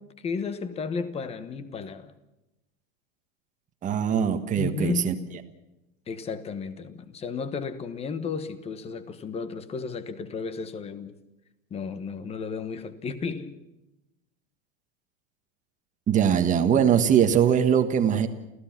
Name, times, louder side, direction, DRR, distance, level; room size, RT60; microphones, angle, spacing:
voice 1, 0.0-2.1 4.6-5.1 6.1-11.1 11.7-13.6, left 5 dB, 15° left, 1.2 m, -33 dB
voice 2, 3.8-5.1 16.1-18.3, right 8 dB, 20° right, 1.5 m, -21 dB
29.5 x 16.0 x 5.9 m
supercardioid pair, 160°, 40 cm